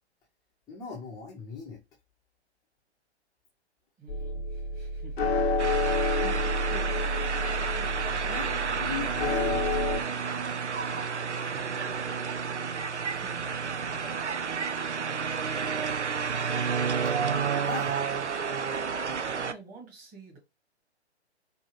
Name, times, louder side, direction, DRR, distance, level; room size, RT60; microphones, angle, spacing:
voice 1, 0.7-1.8 8.2-8.5 8.8-9.8 17.5-18.0, left 5 dB, 10° left, 0.8 m, -39 dB
voice 2, 4.0-7.0 11.4-12.0 13.1-14.5 19.0-20.4, right 3 dB, 20° right, 1.8 m, -49 dB
sound 1, 4.1-10.0, left 2 dB, 60° left, 0.8 m, -29 dB
sound 2, 5.6-19.5, right 6 dB, 85° right, 0.6 m, -31 dB
4.5 x 2.7 x 3.2 m
figure-of-eight pair, 125°, 34 cm